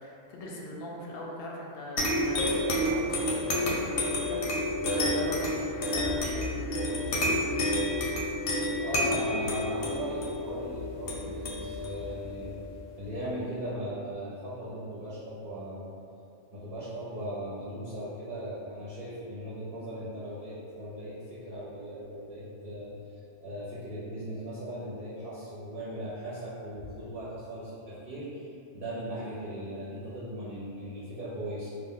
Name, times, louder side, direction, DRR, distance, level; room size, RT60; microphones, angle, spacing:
voice 1, 0.0-7.3, left 1 dB, 65° left, -3 dB, 0.7 m, -41 dB
sound 1, 2.0-13.0, left 1 dB, 85° left, 1.0 m, -30 dB
voice 2, 8.8-12.6 13.0-15.9 16.5-23.0 23.4-31.7, right 1 dB, 55° right, -11 dB, 0.8 m, -38 dB
2.5 x 2.1 x 3.7 m, 2.5 s
omnidirectional pair, 1.2 m